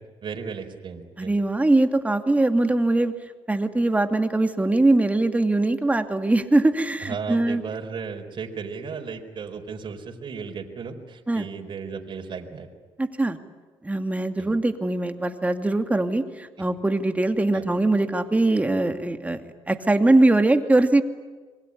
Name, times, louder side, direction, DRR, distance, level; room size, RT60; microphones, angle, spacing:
voice 1, 0.2-1.3 7.0-12.7 14.4-14.6 17.5-17.6, right 5 dB, 50° right, 2 dB, 4.4 m, -35 dB
voice 2, 1.2-3.1 3.5-7.6 11.3-11.5 13.0-13.4 13.8-19.4 19.7-21.0, right 2 dB, 15° right, 7 dB, 2.5 m, -21 dB
26.5 x 22.5 x 9.9 m, 1.4 s
cardioid pair, 85°, 11 cm